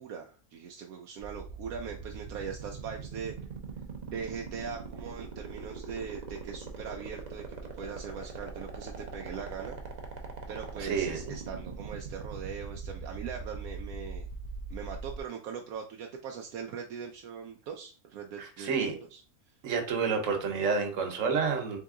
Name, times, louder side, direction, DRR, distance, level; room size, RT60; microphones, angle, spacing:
voice 1, 0.0-3.3 4.1-7.4 7.7-9.8 10.5-14.3 14.7-18.8 19.1-19.5, right 6 dB, 80° right, 2 dB, 1.0 m, -41 dB
sound 1, 1.2-15.2, right 4 dB, 45° right, 0.6 m, -41 dB
voice 2, 10.8-11.3 18.4-19.0 19.6-21.8, right 5 dB, 60° right, 5 dB, 1.3 m, -29 dB
3.8 x 3.6 x 3.6 m, 0.39 s
omnidirectional pair, 1.6 m